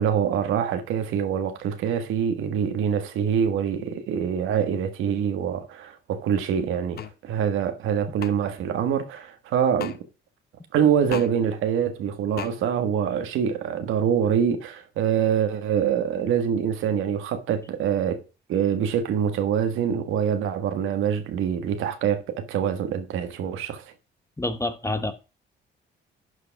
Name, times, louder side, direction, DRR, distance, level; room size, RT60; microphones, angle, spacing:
voice 1, 0.0-10.0 10.7-18.2 18.5-23.8, right 8 dB, 85° right, 1.6 m, -25 dB
sound 1, 7.0-7.1 8.2-8.3 9.8-10.0 11.1-11.3 12.4-12.5, left 9 dB, 50° left, 0.9 m, -33 dB
voice 2, 24.4-25.1, left 2 dB, 15° left, 1.2 m, -27 dB
11.5 x 4.9 x 4.6 m
cardioid pair, 90°, 20 cm